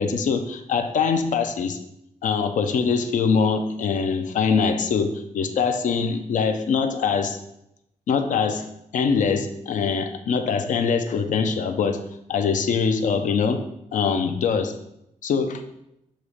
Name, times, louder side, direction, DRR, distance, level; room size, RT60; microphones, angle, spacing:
voice 1, 0.0-1.8 2.2-7.4 8.1-8.7 8.9-13.6 13.9-14.8 15.2-15.6, left 5 dB, 85° left, 8 dB, 0.6 m, -23 dB
6.6 x 3.0 x 4.9 m, 0.81 s
wide cardioid pair, 170°, 13 cm